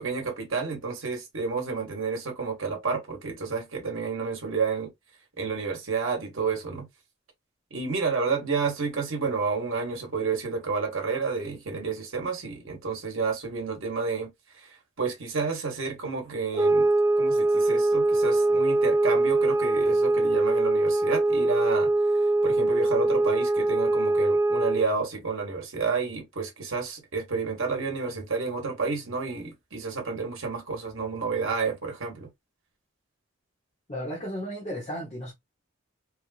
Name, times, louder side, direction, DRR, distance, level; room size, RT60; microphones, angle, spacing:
voice 1, 0.0-4.9 5.4-6.9 7.7-14.3 14.5-16.9 17.2-21.9 22.4-32.3, right 4 dB, 70° right, 1.2 m, -30 dB
sound 1, 16.5-24.9, right 2 dB, 15° right, 0.4 m, -23 dB
voice 2, 33.9-35.3, equal, 30° left, 0.8 m, -34 dB
3.1 x 2.5 x 2.4 m
head